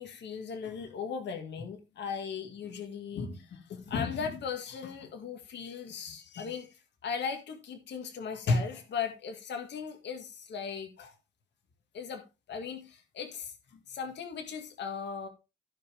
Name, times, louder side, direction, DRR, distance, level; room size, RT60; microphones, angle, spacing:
voice 1, 0.0-6.7 7.0-11.1 11.9-15.3, left 5 dB, 60° left, 2.0 m, -36 dB
15.5 x 5.3 x 3.4 m
cardioid pair, 90°, 20 cm